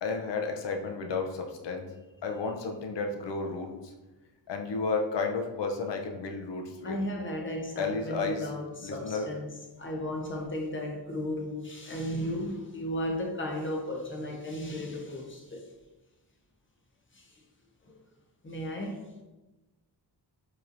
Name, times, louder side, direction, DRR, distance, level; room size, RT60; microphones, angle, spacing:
voice 1, 0.0-1.9 2.2-3.9 4.5-7.0 7.8-8.5 8.8-9.3, left 4 dB, 75° left, 4 dB, 0.7 m, -32 dB
voice 2, 6.8-9.5 9.8-15.7 17.1-17.3 17.8-17.9 18.4-19.0, left 1 dB, 30° left, 0 dB, 0.8 m, -35 dB
4.8 x 3.0 x 2.6 m, 1.1 s
wide cardioid pair, 90°, 43 cm